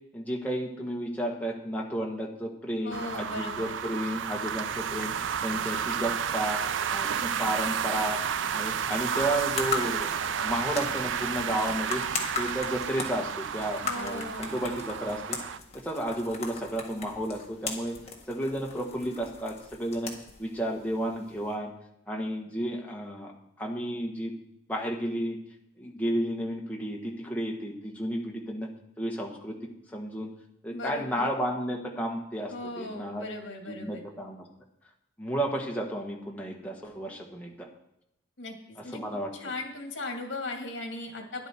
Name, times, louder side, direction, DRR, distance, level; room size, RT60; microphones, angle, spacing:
voice 1, 0.1-5.1 5.4-6.6 6.9-8.2 8.5-10.1 10.4-12.0 12.4-15.4 15.7-18.0 18.3-20.1 20.4-21.7 22.1-23.3 23.6-24.3 24.7-25.4 25.8-28.7 29.0-29.5 29.9-30.3 30.6-33.2 33.6-34.4 35.2-37.7 38.8-39.3, right 1 dB, 10° left, -1 dB, 1.5 m, -32 dB
voice 2, 2.8-3.8 13.8-14.6 30.7-31.3 32.5-34.0 38.4-38.6 38.8-39.0 39.3-41.5, left 2 dB, 70° left, 3 dB, 2.2 m, -37 dB
sound 1, 2.9-15.6, right 7 dB, 80° right, 0.4 m, -31 dB
sound 2, 9.1-21.5, left 5 dB, 35° left, 1.6 m, -39 dB
12.0 x 10.5 x 4.5 m, 0.81 s
head